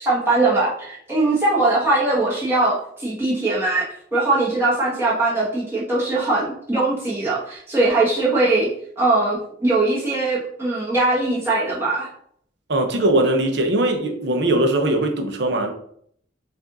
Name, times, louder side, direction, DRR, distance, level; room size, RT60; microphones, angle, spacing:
voice 1, 0.0-8.7 9.0-12.1, right 2 dB, 15° right, 1.4 m, -21 dB
voice 2, 12.7-15.7, right 1 dB, 60° right, 0.7 m, -20 dB
4.8 x 2.6 x 3.9 m
head